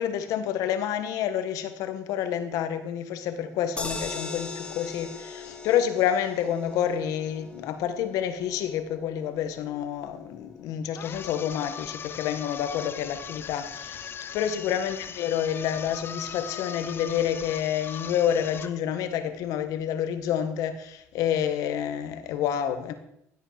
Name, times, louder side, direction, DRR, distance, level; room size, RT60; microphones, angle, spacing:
voice 1, 0.0-22.9, left 9 dB, 80° left, 9 dB, 1.6 m, -28 dB
sound 1, 3.8-16.0 16.4-16.5 16.8-16.9, left 4 dB, 15° left, 2.3 m, -42 dB
sound 2, 10.9-18.8, left 7 dB, 40° left, 0.6 m, -39 dB
15.5 x 8.2 x 6.0 m, 0.75 s
cardioid pair, 110°, 6 cm